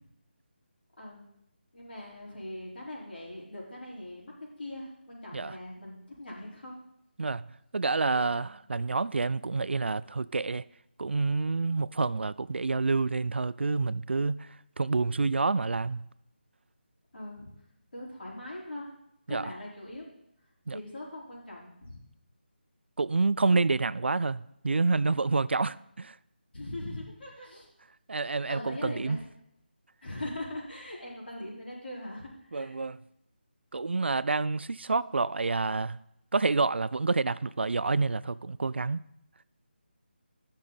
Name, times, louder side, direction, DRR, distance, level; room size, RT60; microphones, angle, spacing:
voice 1, 1.7-4.3 4.6-6.8 8.3-8.5 17.1-17.5 17.9-18.9 19.3-20.1 20.7-22.0 26.5-27.7 28.5-29.2 30.0-32.7, left 1 dB, 65° left, 4.6 m, -41 dB
voice 2, 7.7-10.6 11.0-16.1 19.3-19.4 20.7-20.8 23.0-26.2 28.1-29.2 32.5-33.0 33.7-36.0 36.3-39.0, right 3 dB, 85° right, 0.4 m, -28 dB
16.5 x 6.4 x 4.2 m
figure-of-eight pair, 180°, 6 cm